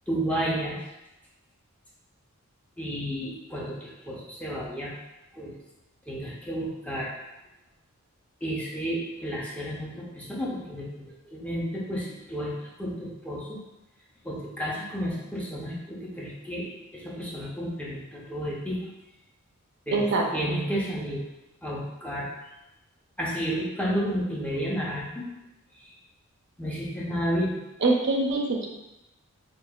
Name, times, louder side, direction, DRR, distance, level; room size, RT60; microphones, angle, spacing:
voice 1, 0.1-0.8 2.8-4.9 5.3-5.5 6.1-7.1 8.4-13.6 14.2-18.8 19.9-21.2 21.6-22.3 23.2-25.2 26.6-27.5, equal, 5° left, -5 dB, 0.6 m, -31 dB
voice 2, 19.9-20.6 27.8-28.7, right 2 dB, 55° right, 1 dB, 0.5 m, -25 dB
5.1 x 2.4 x 2.3 m, 0.96 s
head